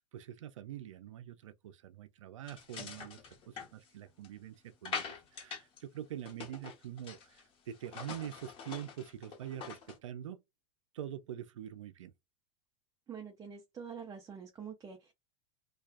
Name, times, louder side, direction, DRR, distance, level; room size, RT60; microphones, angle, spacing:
voice 1, 0.0-3.2 3.5-10.4 10.9-12.1, right 11 dB, 85° right, 0.4 m, -45 dB
sound 1, 2.5-4.4 4.9-5.8 6.1-7.4 7.7-10.0, left 5 dB, 35° left, 1.1 m, -44 dB
voice 2, 13.1-15.1, right 6 dB, 20° right, 0.6 m, -46 dB
2.3 x 2.3 x 2.4 m
hypercardioid pair, 110°, 16 cm